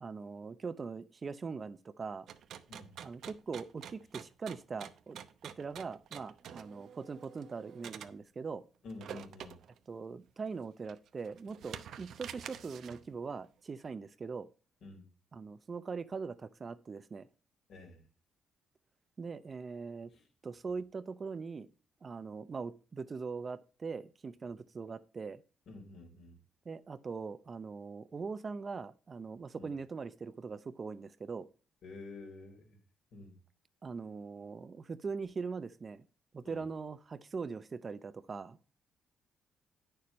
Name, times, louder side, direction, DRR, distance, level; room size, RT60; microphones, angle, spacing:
voice 1, 0.0-2.3 3.0-5.2 5.4-8.6 9.9-14.5 15.3-17.3 19.2-20.1 20.4-21.7 22.0-25.4 26.7-31.5 33.8-36.0 36.3-38.6, right 5 dB, 35° right, 0.6 m, -41 dB
sound 1, 2.3-8.2 8.9-9.8 10.3-10.4 10.8-13.1, right 9 dB, 70° right, 0.8 m, -48 dB
voice 2, 8.8-9.6 14.8-15.1 17.7-18.0 20.1-20.3 25.7-26.4 29.5-29.7 31.8-32.8 33.1-33.4 36.4-36.7, left 3 dB, 65° left, 3.7 m, -49 dB
9.3 x 6.8 x 4.2 m
cardioid pair, 90°, 0 cm